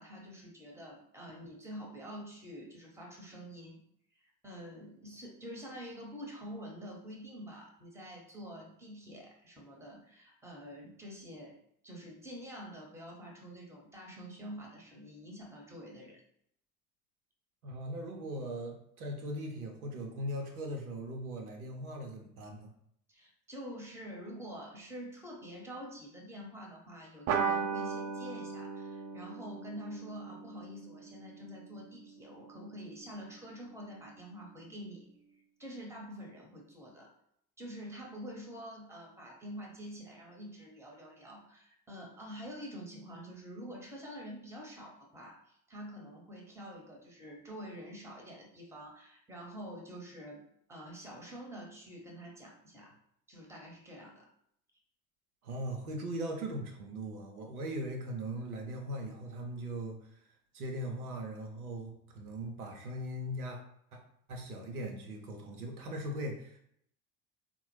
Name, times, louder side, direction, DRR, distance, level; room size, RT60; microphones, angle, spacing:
voice 1, 0.0-3.8 4.4-11.5 11.8-16.2 23.1-35.0 35.6-37.1 37.6-50.4 50.7-52.9 53.3-54.3, equal, 5° right, -1 dB, 0.9 m, -47 dB
voice 2, 17.6-22.7 55.4-60.2 60.5-63.6 63.9-64.0 64.3-66.6, right 1 dB, 80° right, 2 dB, 0.7 m, -39 dB
sound 1, 27.3-32.2, right 6 dB, 40° right, 0.6 m, -37 dB
3.8 x 2.1 x 3.1 m, 0.70 s
figure-of-eight pair, 70°, 44 cm